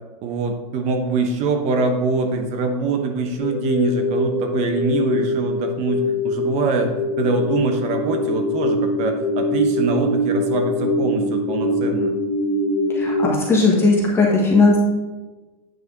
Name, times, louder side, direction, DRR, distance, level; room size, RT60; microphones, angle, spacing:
voice 1, 0.2-12.2, right 4 dB, 35° right, 5 dB, 1.0 m, -23 dB
sound 1, 3.4-13.3, left 1 dB, 30° left, 2.6 m, -23 dB
voice 2, 12.9-14.8, left 3 dB, 10° left, -3 dB, 1.6 m, -17 dB
9.2 x 5.6 x 3.9 m, 1.2 s
supercardioid pair, 150°, 20 cm